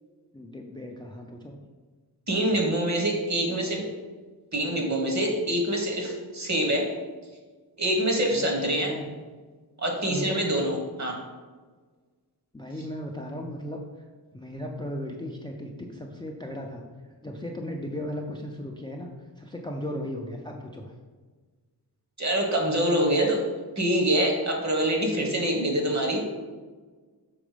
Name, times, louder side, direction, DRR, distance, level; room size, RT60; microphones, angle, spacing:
voice 1, 0.3-1.6 3.5-3.6 8.3-8.5 8.8-9.1 10.0-10.5 12.5-13.9 14.3-16.9 17.2-19.1 19.4-20.9, left 1 dB, 10° left, 1 dB, 0.5 m, -36 dB
voice 2, 2.3-3.8 4.5-6.9 7.8-8.9 9.8-11.2 22.2-23.4 23.8-26.2, right 1 dB, 45° right, 1 dB, 1.4 m, -25 dB
6.1 x 4.3 x 5.0 m, 1.4 s
wide cardioid pair, 140°, 40 cm